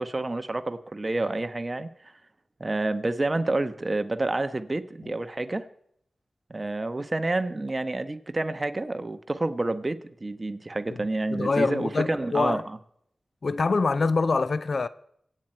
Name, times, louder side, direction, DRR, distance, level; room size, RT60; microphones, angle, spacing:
voice 1, 0.0-1.9 2.6-5.6 6.5-12.6, right 2 dB, 35° right, 1.2 m, -29 dB
voice 2, 11.3-12.6 13.4-14.9, left 4 dB, 65° left, 0.6 m, -25 dB
25.0 x 9.0 x 4.5 m
cardioid pair, 45°, 0 cm